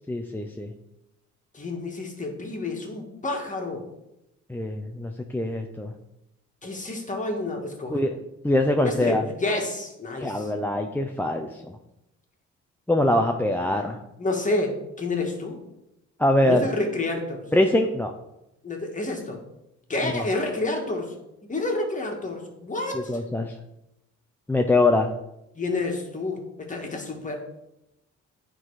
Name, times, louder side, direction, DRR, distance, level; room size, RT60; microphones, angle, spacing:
voice 1, 0.1-0.7 4.5-5.9 7.9-8.2 8.4-9.2 10.2-11.6 12.9-14.0 16.2-16.7 17.5-18.1 20.0-20.3 22.9-23.5 24.5-25.1, left 1 dB, 5° left, 3 dB, 0.5 m, -23 dB
voice 2, 1.5-3.8 6.6-8.0 8.8-10.5 14.2-15.6 16.4-17.4 18.6-19.4 19.9-21.1 21.5-23.1 25.6-26.4 26.7-27.5, left 2 dB, 25° left, 2 dB, 1.7 m, -29 dB
9.2 x 3.9 x 4.8 m, 0.88 s
cardioid pair, 90°, 30 cm